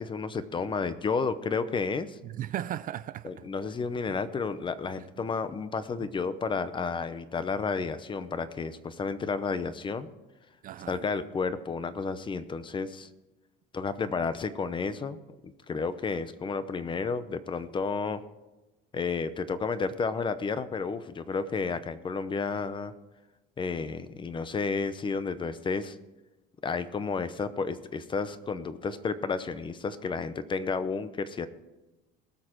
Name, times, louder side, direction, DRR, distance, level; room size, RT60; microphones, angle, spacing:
voice 1, 0.0-2.2 3.2-10.1 10.9-13.1 13.7-15.2 15.4-18.2 18.9-22.9 23.6-26.0 26.6-31.5, left 4 dB, 25° left, 0.7 m, -31 dB
voice 2, 2.2-3.5 5.2-5.3 6.0-6.1 10.6-11.1, right 12 dB, 40° right, 0.4 m, -37 dB
19.5 x 6.5 x 4.5 m
cardioid pair, 135°, 21 cm